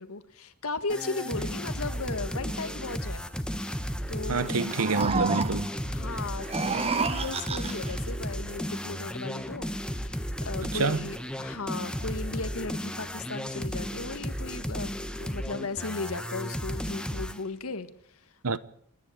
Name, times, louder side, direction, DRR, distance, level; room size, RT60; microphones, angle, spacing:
voice 1, 0.0-3.2 3.6-3.8 4.1-4.5 5.9-10.2 10.5-18.3, left 3 dB, 70° left, 1.7 m, -36 dB
sound 1, 0.9-17.4, equal, 5° left, 1.2 m, -34 dB
voice 2, 4.3-5.7 10.6-11.0 18.4-18.6, right 4 dB, 75° right, 1.0 m, -27 dB
sound 2, 4.5-5.8 6.4-8.0, right 4 dB, 25° right, 0.9 m, -30 dB
29.0 x 10.5 x 9.0 m
head